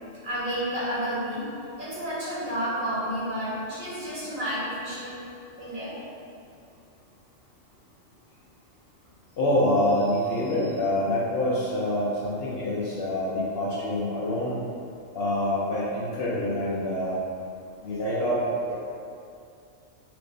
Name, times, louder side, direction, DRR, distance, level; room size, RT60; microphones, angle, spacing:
voice 1, 0.2-1.4 1.8-5.2 5.6-5.9, equal, 50° right, -9 dB, 0.8 m, -30 dB
voice 2, 9.4-14.5 15.1-17.1 17.8-18.4 18.7-18.8, left 1 dB, 60° left, -7 dB, 0.7 m, -26 dB
4.5 x 2.0 x 2.5 m, 2.5 s
omnidirectional pair, 1.3 m